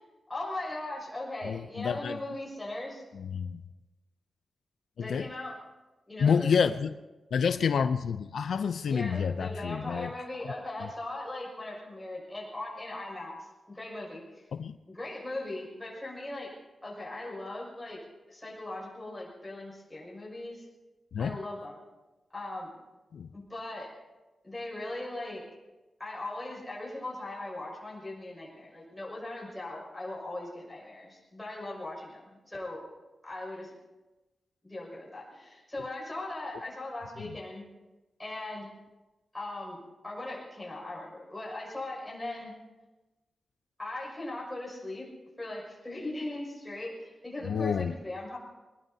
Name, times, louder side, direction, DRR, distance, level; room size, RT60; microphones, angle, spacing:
voice 1, 0.0-3.0 5.0-5.5 6.1-6.7 8.9-14.5 14.9-16.5 16.8-18.0 18.3-20.7 21.2-21.8 22.3-22.7 23.3-23.9 24.4-25.4 26.0-32.9 33.2-33.7 34.6-37.6 38.2-38.7 39.3-39.8 40.0-42.5 43.8-45.1 45.4-48.4, left 2 dB, 10° left, -4 dB, 6.1 m, -39 dB
voice 2, 1.4-2.2 3.2-3.6 5.0-5.3 6.2-6.9 7.3-10.1 14.6-14.8 21.1-21.4 23.1-23.3 47.4-47.9, left 6 dB, 80° left, 10 dB, 0.5 m, -28 dB
24.0 x 20.0 x 2.8 m, 1.1 s
wide cardioid pair, 150°, 0 cm